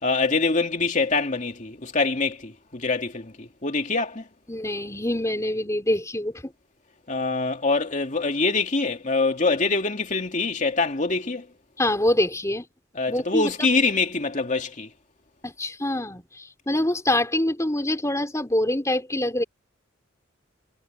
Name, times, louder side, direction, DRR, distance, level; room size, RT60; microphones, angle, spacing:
voice 1, 0.0-4.2 7.1-11.5 12.9-14.9, left 3 dB, 40° left, 2.4 m, -24 dB
voice 2, 4.5-6.5 11.8-12.6 13.1-13.7 15.4-19.4, left 1 dB, 15° left, 4.0 m, -25 dB
head